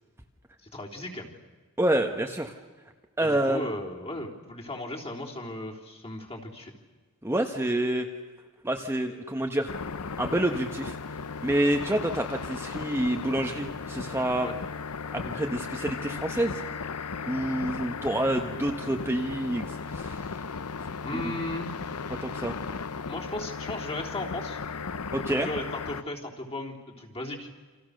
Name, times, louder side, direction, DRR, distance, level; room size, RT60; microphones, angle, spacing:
voice 1, 0.7-1.3 3.2-6.7 14.4-14.5 21.0-21.7 23.1-24.6 25.3-27.5, left 1 dB, 30° left, 0 dB, 3.7 m, -36 dB
voice 2, 1.8-2.5 3.2-3.7 7.2-8.1 8.6-9.7 10.2-11.0 11.4-14.5 15.1-16.6 17.3-20.3 21.1-21.3 22.2-22.6 25.1-25.5, right 1 dB, 10° right, 3 dB, 1.3 m, -28 dB
sound 1, 9.7-26.0, left 5 dB, 80° left, 0.9 m, -36 dB
29.0 x 27.0 x 6.6 m, 1.3 s
head